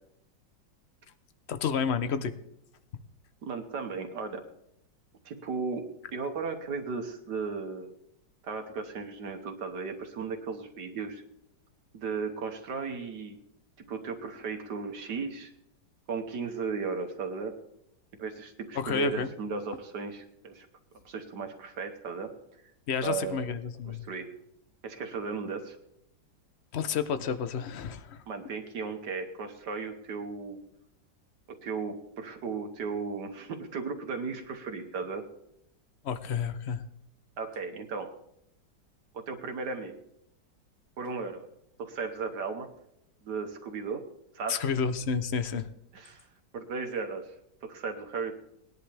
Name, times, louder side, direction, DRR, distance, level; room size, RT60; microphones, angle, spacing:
voice 1, 1.5-2.3 18.7-19.3 22.9-24.1 26.7-28.2 36.0-36.8 44.5-45.7, left 6 dB, 55° left, 11 dB, 0.8 m, -30 dB
voice 2, 3.4-4.4 5.2-7.9 8.4-11.2 11.9-13.4 13.9-15.5 16.1-17.5 18.2-20.7 21.0-22.3 23.0-23.5 23.8-24.3 24.8-25.8 28.3-30.6 31.6-35.2 37.4-38.1 39.1-39.9 41.0-41.5 41.8-42.7 43.2-44.0 44.3-44.6 45.9-46.3 46.5-47.3 47.6-48.4, right 5 dB, 65° right, 5 dB, 1.6 m, -35 dB
19.5 x 11.0 x 3.4 m, 0.80 s
omnidirectional pair, 2.0 m